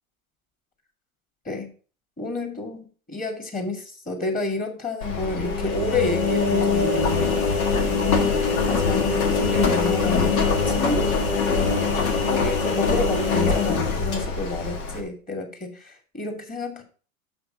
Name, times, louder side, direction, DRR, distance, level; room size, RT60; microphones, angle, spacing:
voice 1, 2.2-7.4 7.8-16.8, left 2 dB, 20° left, 4 dB, 2.2 m, -30 dB
Engine, 5.0-15.0, left 4 dB, 80° left, 1.8 m, -23 dB
6.3 x 5.9 x 5.2 m, 0.40 s
hypercardioid pair, 95°, 42 cm